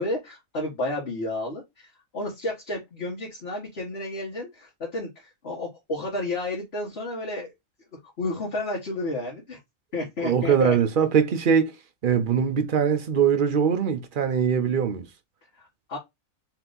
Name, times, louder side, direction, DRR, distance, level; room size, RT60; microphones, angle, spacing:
voice 1, 0.0-7.5 8.0-9.6 9.9-10.7 15.6-16.0, left 2 dB, 50° left, 1.7 m, -31 dB
voice 2, 10.2-11.7 12.0-15.1, right 7 dB, 45° right, 0.8 m, -22 dB
4.4 x 2.9 x 3.9 m
omnidirectional pair, 1.4 m